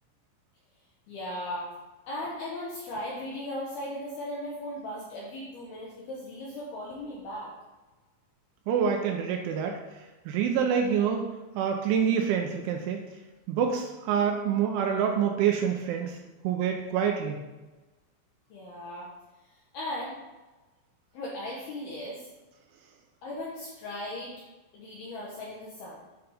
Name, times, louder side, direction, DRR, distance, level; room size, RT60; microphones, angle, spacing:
voice 1, 1.1-1.7 2.1-7.5 18.5-19.1 19.7-20.2 21.1-22.3 23.2-24.4 24.7-26.0, left 1 dB, 75° left, -4 dB, 2.4 m, -37 dB
voice 2, 8.7-9.8 10.3-11.3 11.6-13.0 13.5-16.2 16.4-17.4, right 7 dB, 80° right, 3 dB, 2.9 m, -26 dB
8.7 x 5.7 x 3.5 m, 1.1 s
omnidirectional pair, 5.9 m